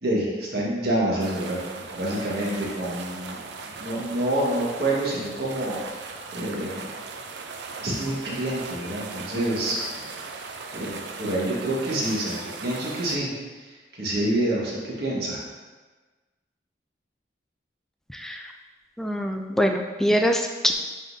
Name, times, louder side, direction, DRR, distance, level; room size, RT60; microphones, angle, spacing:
voice 1, 0.0-3.4 3.6-6.8 7.8-10.0 10.3-15.4, right 1 dB, 60° right, -5 dB, 1.6 m, -28 dB
sound 1, 1.2-13.2, right 4 dB, 80° right, 0.5 m, -38 dB
voice 2, 18.1-18.5 19.0-20.7, equal, ahead, 3 dB, 0.3 m, -24 dB
9.0 x 3.8 x 2.7 m, 1.3 s
head